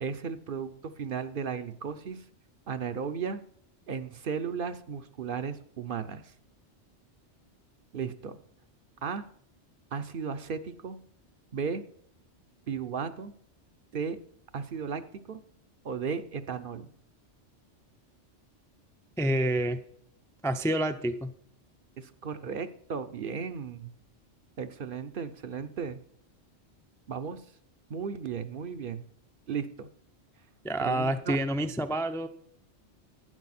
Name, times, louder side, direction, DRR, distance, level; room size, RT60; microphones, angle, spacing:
voice 1, 0.0-2.2 2.7-3.4 3.9-6.3 7.9-8.4 9.0-9.2 9.9-11.0 11.5-11.8 12.7-13.3 13.9-14.2 14.5-15.0 15.3-15.4 15.8-16.9 22.0-23.9 24.6-26.0 27.1-27.4 27.9-29.1 29.5-29.9 30.8-31.4, right 6 dB, 55° right, 10 dB, 0.8 m, -35 dB
voice 2, 19.2-19.8 20.4-21.3 30.6-32.3, right 1 dB, 5° left, 7 dB, 0.4 m, -28 dB
12.0 x 9.2 x 4.2 m, 0.65 s
omnidirectional pair, 1.2 m